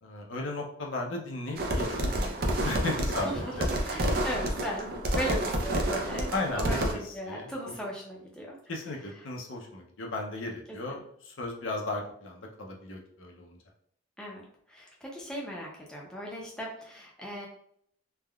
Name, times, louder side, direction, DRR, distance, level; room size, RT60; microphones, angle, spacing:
voice 1, 0.0-3.7 6.3-7.0 7.3-7.5 8.7-13.6, left 2 dB, 85° left, 0 dB, 0.6 m, -36 dB
sound 1, 1.6-6.9, right 1 dB, 50° right, 0.4 m, -29 dB
voice 2, 3.2-8.6 10.7-11.0 14.2-17.5, equal, 5° left, -3 dB, 0.5 m, -37 dB
3.4 x 2.1 x 2.3 m, 0.65 s
head